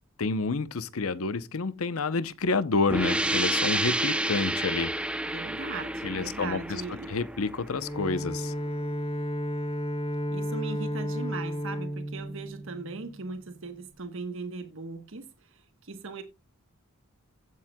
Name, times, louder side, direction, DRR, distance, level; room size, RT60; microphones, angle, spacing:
voice 1, 0.2-4.9 6.0-6.8 7.1-8.5, left 4 dB, 75° left, 0.7 m, -29 dB
sound 1, 2.9-8.4, right 1 dB, 5° right, 0.6 m, -30 dB
voice 2, 5.2-7.1 10.3-16.2, right 3 dB, 65° right, 1.2 m, -39 dB
Bowed string instrument, 7.7-13.3, equal, 25° left, 1.8 m, -33 dB
16.0 x 7.4 x 2.3 m
head